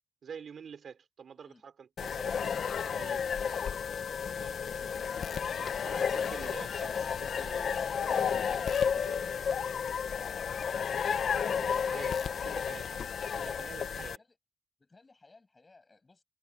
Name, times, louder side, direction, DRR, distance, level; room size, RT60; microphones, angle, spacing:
voice 1, 0.2-3.3 4.4-4.6 5.6-9.5 11.2-13.1 13.4-14.2, right 7 dB, 75° right, 5.1 m, -48 dB
sound 1, 2.0-14.2, left 7 dB, 90° left, 0.8 m, -32 dB
voice 2, 4.5-5.2 13.3-14.4 14.8-16.2, left 3 dB, 30° left, 6.7 m, -60 dB
wide cardioid pair, 140°, 0 cm